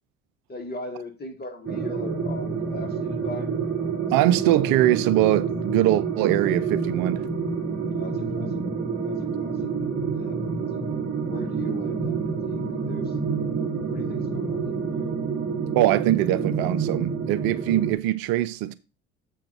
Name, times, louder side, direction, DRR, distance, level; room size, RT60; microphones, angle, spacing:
voice 1, 0.5-3.6 7.9-8.5 9.0-9.7 10.1-13.2 13.9-15.0, left 2 dB, 25° left, 2.4 m, -40 dB
sound 1, 1.6-17.9, right 5 dB, 35° right, 2.4 m, -28 dB
voice 2, 4.1-7.3 15.7-18.7, right 14 dB, 60° right, 0.6 m, -22 dB
7.6 x 4.6 x 5.3 m
hypercardioid pair, 60°, 40 cm